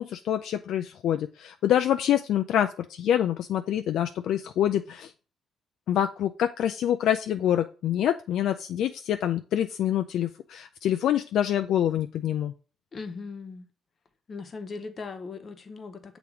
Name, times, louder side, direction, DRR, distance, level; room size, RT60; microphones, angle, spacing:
voice 1, 0.0-5.1 5.9-12.5, left 10 dB, 80° left, 0.3 m, -26 dB
voice 2, 12.9-13.7 14.3-16.2, left 4 dB, 45° left, 0.9 m, -39 dB
6.9 x 3.0 x 4.7 m
cardioid pair, 90°, 0 cm